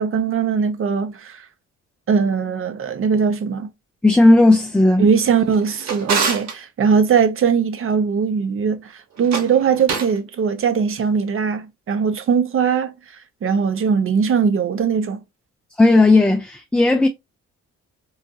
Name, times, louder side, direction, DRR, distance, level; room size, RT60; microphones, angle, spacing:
voice 1, 0.0-1.4 2.1-3.7 5.0-12.9 13.4-15.2, right 6 dB, 45° right, 0.7 m, -20 dB
voice 2, 4.0-5.0 15.8-17.1, left 2 dB, 5° left, 0.3 m, -14 dB
Drawer open or close, 5.4-6.6 9.1-10.2, right 5 dB, 65° right, 1.2 m, -26 dB
4.0 x 2.5 x 2.2 m
cardioid pair, 90°, 30 cm